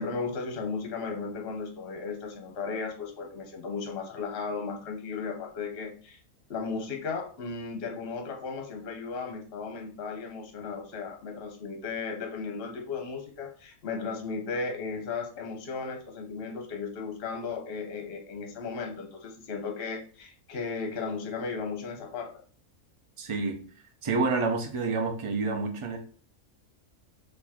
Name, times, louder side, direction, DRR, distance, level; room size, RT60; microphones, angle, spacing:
voice 1, 0.0-6.2 6.5-22.4, left 4 dB, 50° left, 4 dB, 0.9 m, -35 dB
voice 2, 23.2-23.6 24.0-26.0, right 3 dB, 45° right, 4 dB, 0.4 m, -28 dB
4.7 x 2.7 x 4.2 m, 0.44 s
omnidirectional pair, 1.6 m